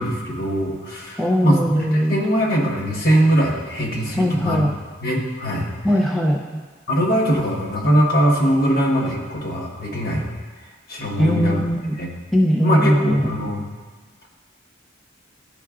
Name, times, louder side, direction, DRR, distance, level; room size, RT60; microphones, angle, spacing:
voice 1, 0.0-1.8 2.1-4.6 5.0-5.7 6.9-10.2 10.9-11.6 12.0-12.1 12.6-13.7, equal, 50° left, -3 dB, 1.2 m, -21 dB
voice 2, 1.2-2.2 4.2-4.7 5.8-6.4 11.2-11.9 12.3-13.3, equal, ahead, -2 dB, 0.4 m, -19 dB
12.0 x 4.5 x 2.4 m, 1.4 s
head